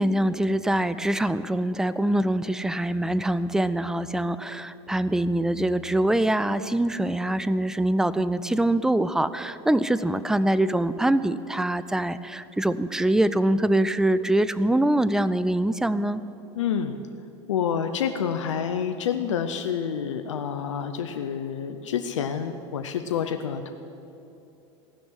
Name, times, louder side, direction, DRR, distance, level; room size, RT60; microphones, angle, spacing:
voice 1, 0.0-16.2, right 1 dB, 5° right, 15 dB, 0.5 m, -24 dB
voice 2, 16.5-17.0 17.5-23.7, left 8 dB, 85° left, 7 dB, 0.7 m, -28 dB
16.5 x 6.2 x 9.9 m, 2.8 s
hypercardioid pair, 95°, 15 cm